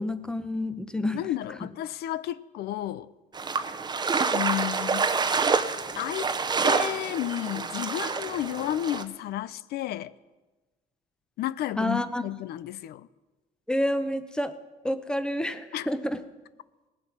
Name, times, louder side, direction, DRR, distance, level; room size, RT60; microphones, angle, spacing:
voice 1, 0.0-1.2 11.8-12.2 13.7-14.5 14.8-16.2, left 1 dB, 5° left, 0.8 m, -28 dB
voice 2, 1.1-3.1 4.3-5.1 6.0-6.3 6.6-10.1 11.4-13.1 15.7-15.9, left 13 dB, 70° left, 0.5 m, -32 dB
sound 1, 3.3-9.0, right 5 dB, 25° right, 0.8 m, -27 dB
19.0 x 7.5 x 5.9 m
cardioid pair, 110°, 17 cm